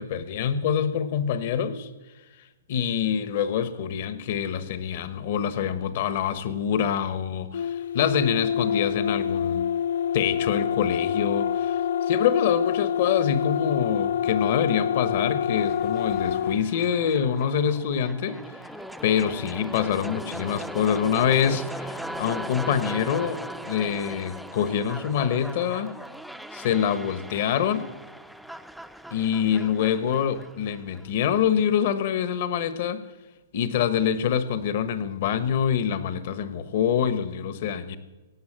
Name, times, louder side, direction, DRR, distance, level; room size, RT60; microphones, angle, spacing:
voice 1, 0.0-1.9 2.7-9.7 10.1-11.8 12.1-18.6 19.0-25.9 26.5-27.9 29.1-33.0 33.5-38.0, left 8 dB, 50° left, 12 dB, 1.2 m, -25 dB
sound 1, 7.5-16.6, left 8 dB, 70° left, 0.4 m, -26 dB
sound 2, 15.6-31.6, equal, ahead, 0.4 m, -39 dB
16.5 x 8.6 x 7.5 m, 1.2 s
hypercardioid pair, 165°, 0 cm